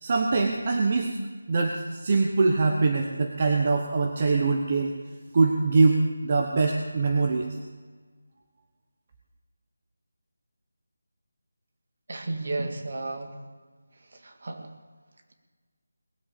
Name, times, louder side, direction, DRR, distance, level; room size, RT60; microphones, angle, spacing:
voice 1, 0.0-1.1 1.5-4.9 5.3-7.4, right 3 dB, 25° right, 2 dB, 0.9 m, -23 dB
voice 2, 12.1-13.3 14.2-14.7, right 2 dB, 45° right, 5 dB, 1.9 m, -32 dB
20.0 x 7.9 x 7.4 m, 1.5 s
figure-of-eight pair, 175°, 0 cm